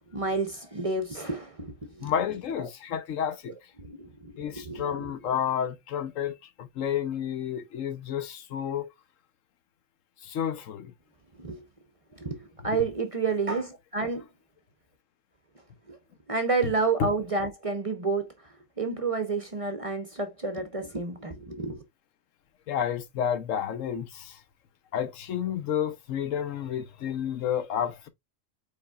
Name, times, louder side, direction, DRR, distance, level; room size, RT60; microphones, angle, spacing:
voice 1, 0.1-1.7 2.0-2.1 3.8-4.9 11.4-11.6 12.2-14.2 15.9-16.0 16.3-18.3 18.8-21.8, right 4 dB, 35° right, 0.7 m, -30 dB
voice 2, 2.0-3.5 4.4-8.9 10.2-10.9 16.6-16.7 17.0-17.1 22.7-24.4 24.9-28.1, left 9 dB, 80° left, 1.1 m, -30 dB
5.3 x 4.1 x 2.3 m
omnidirectional pair, 1.3 m